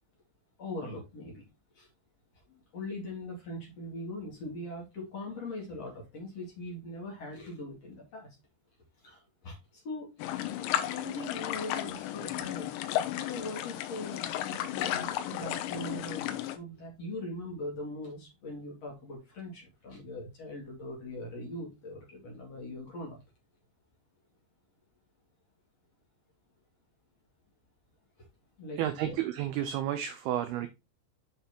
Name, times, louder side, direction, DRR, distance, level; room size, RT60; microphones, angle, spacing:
voice 1, 0.6-1.5 1.7-1.9 2.5-8.3 9.0-12.7 13.2-23.2 28.2-28.3 28.6-28.8, left 2 dB, 45° left, 2.8 m, -41 dB
sound 1, 10.2-16.6, left 12 dB, 85° left, 3.1 m, -34 dB
voice 2, 28.8-30.7, right 12 dB, 80° right, 2.3 m, -31 dB
7.4 x 5.7 x 2.9 m
omnidirectional pair, 5.2 m